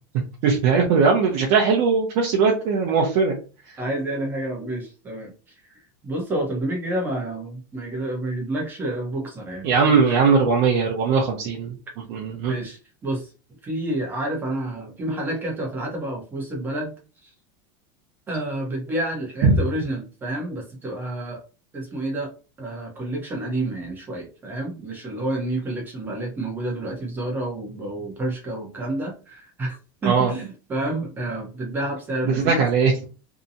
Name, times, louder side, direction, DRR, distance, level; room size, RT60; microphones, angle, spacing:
voice 1, 0.4-3.4 9.6-11.7 12.1-12.5 19.4-19.6 30.0-30.3 32.2-32.9, right 5 dB, 50° right, 0 dB, 0.6 m, -19 dB
voice 2, 3.8-5.3 5.7-10.3 12.5-13.3 13.6-16.9 17.2-17.3 18.3-21.4 21.7-22.3 22.6-32.6, right 1 dB, 15° right, 0 dB, 0.8 m, -29 dB
2.8 x 2.2 x 2.6 m, 0.35 s
supercardioid pair, 160°, 12 cm